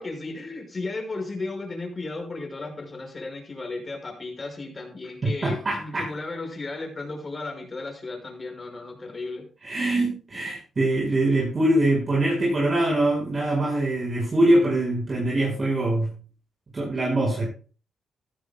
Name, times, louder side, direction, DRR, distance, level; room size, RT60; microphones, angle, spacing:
voice 1, 0.0-9.5, left 3 dB, 30° left, 2 dB, 5.8 m, -35 dB
voice 2, 5.2-6.1 9.6-16.1 16.7-17.5, right 1 dB, 40° right, -4 dB, 5.5 m, -23 dB
16.0 x 13.5 x 2.3 m, 0.37 s
cardioid pair, 85°, 0 cm